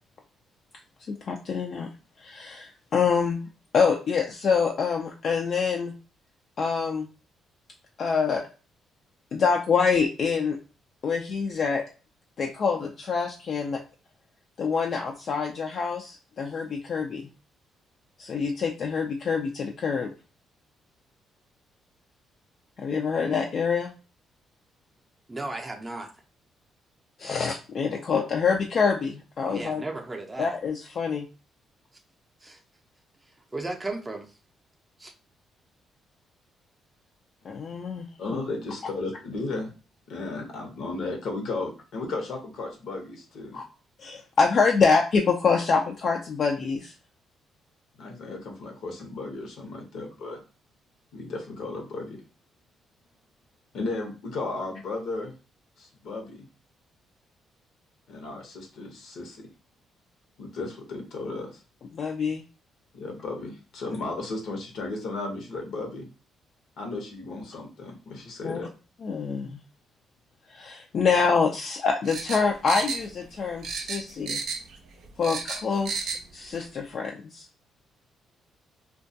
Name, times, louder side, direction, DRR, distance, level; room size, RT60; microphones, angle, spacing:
voice 1, 1.1-1.9 2.2-3.4 3.7-5.9 6.6-7.1 8.0-8.4 9.3-10.6 11.0-11.8 12.4-13.8 14.6-17.3 18.2-20.1 22.8-23.9 27.2-29.8 30.4-31.3 37.4-38.1 43.5-43.6 44.0-46.9 61.9-62.4 68.4-68.6 69.0-69.6 70.5-74.4 75.2-77.5, left 5 dB, 55° left, 1 dB, 0.3 m, -26 dB
voice 2, 25.3-26.1 29.5-30.6 32.4-32.6 33.5-34.3 35.0-35.1, right 2 dB, 20° right, 3 dB, 0.5 m, -35 dB
voice 3, 38.2-39.7 40.1-43.6 48.0-50.4 51.1-52.2 53.7-55.3 55.8-56.5 58.1-59.5 60.4-61.6 62.9-66.1 66.8-68.7, left 3 dB, 75° left, 2 dB, 0.8 m, -34 dB
sound 1, 72.0-73.4 73.6-74.8 75.0-76.2 76.5-76.6, right 5 dB, 75° right, 0.4 m, -32 dB
2.2 x 2.2 x 2.6 m, 0.34 s
cardioid pair, 90°, 0 cm